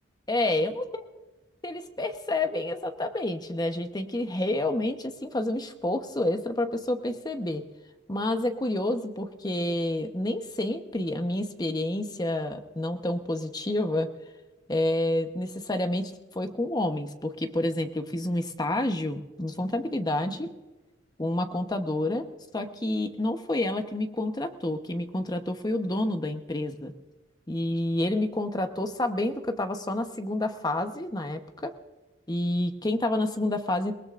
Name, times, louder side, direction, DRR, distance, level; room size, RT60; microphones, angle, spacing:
voice 1, 0.3-0.8 1.6-7.7 8.1-14.1 14.7-20.5 21.2-22.3 22.5-26.9 27.5-31.7 32.3-33.9, left 1 dB, 20° left, 7 dB, 1.0 m, -29 dB
29.5 x 18.5 x 2.6 m, 1.1 s
head